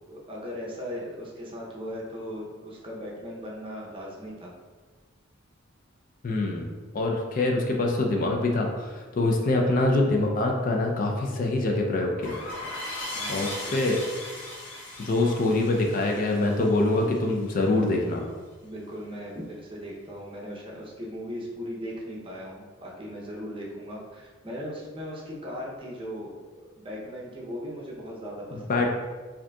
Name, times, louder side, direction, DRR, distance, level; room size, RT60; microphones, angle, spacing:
voice 1, 0.1-4.5 13.1-13.7 18.6-26.3 26.7-28.9, equal, 25° right, -3 dB, 0.6 m, -38 dB
voice 2, 6.2-6.7 6.9-12.4 13.3-14.0 15.0-18.2 28.5-28.9, left 2 dB, 40° left, 1 dB, 0.4 m, -25 dB
sound 1, 12.2-17.5, left 2 dB, 65° left, 1.0 m, -38 dB
4.8 x 2.7 x 2.2 m, 1.4 s
head